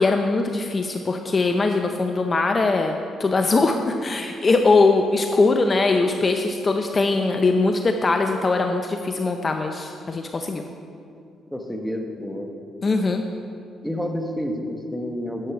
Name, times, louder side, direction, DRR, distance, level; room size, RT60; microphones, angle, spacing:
voice 1, 0.0-10.6 12.8-13.2, left 3 dB, 35° left, 5 dB, 0.5 m, -21 dB
voice 2, 11.5-12.5 13.8-15.5, equal, ahead, 3 dB, 1.1 m, -29 dB
10.0 x 7.5 x 4.8 m, 2.4 s
cardioid pair, 90°, 0 cm